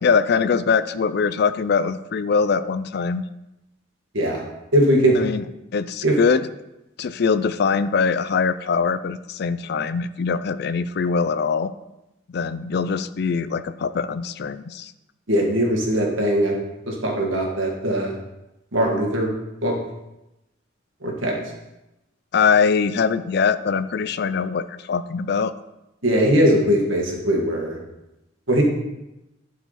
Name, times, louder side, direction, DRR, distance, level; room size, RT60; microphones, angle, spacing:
voice 1, 0.0-3.2 5.1-5.4 5.7-6.5 7.0-11.7 12.3-14.9 22.3-25.5, left 5 dB, 55° left, 14 dB, 0.4 m, -22 dB
voice 2, 4.7-5.2 6.0-6.2 15.3-16.6 16.9-18.1 18.7-19.3 19.6-19.8 21.0-21.4 26.0-27.8 28.5-28.6, equal, 90° right, 0 dB, 1.9 m, -20 dB
11.0 x 4.8 x 4.1 m, 0.93 s
head